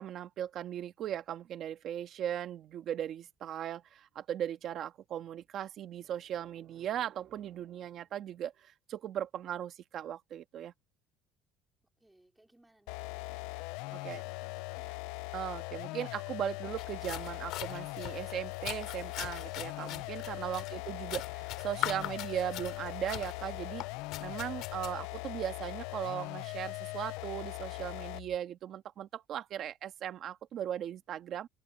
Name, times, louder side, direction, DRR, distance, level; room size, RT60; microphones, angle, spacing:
voice 1, 0.0-10.7 13.9-14.2 15.3-23.8 24.2-31.5, right 10 dB, 40° right, 1.6 m, -38 dB
voice 2, 12.0-13.7 14.1-15.1 20.5-21.2, right 1 dB, 5° right, 3.7 m, -66 dB
sound 1, 12.9-28.4, left 22 dB, 90° left, 0.6 m, -41 dB
sound 2, 16.8-24.9, left 15 dB, 55° left, 2.7 m, -42 dB
cardioid pair, 175°, 0 cm